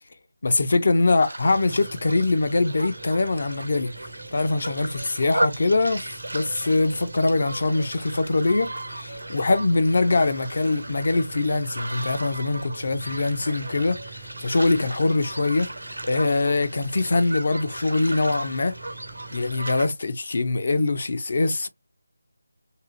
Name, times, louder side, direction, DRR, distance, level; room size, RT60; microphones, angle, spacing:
voice 1, 0.4-3.9 4.3-15.7 16.0-18.7 19.3-21.7, left 3 dB, 50° left, 0.5 m, -23 dB
sound 1, 1.2-19.9, right 1 dB, 80° right, 0.8 m, -35 dB
sound 2, 1.5-19.7, right 4 dB, 15° right, 0.3 m, -45 dB
2.7 x 2.0 x 2.8 m
figure-of-eight pair, 160°, 0 cm